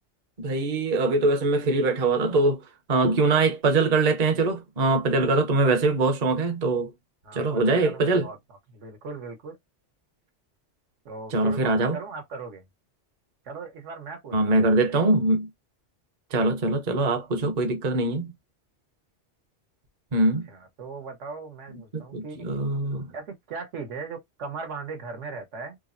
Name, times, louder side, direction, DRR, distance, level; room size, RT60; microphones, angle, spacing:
voice 1, 0.4-2.6 2.9-6.9 7.3-8.3 11.3-12.0 14.3-15.5 16.3-18.3 20.1-20.5 21.9-23.1, right 2 dB, 40° right, 0.7 m, -23 dB
voice 2, 7.2-8.4 8.7-9.6 11.0-12.6 13.4-14.6 20.5-22.5 23.1-25.8, right 4 dB, 80° right, 1.2 m, -38 dB
3.3 x 2.0 x 2.4 m
omnidirectional pair, 1.2 m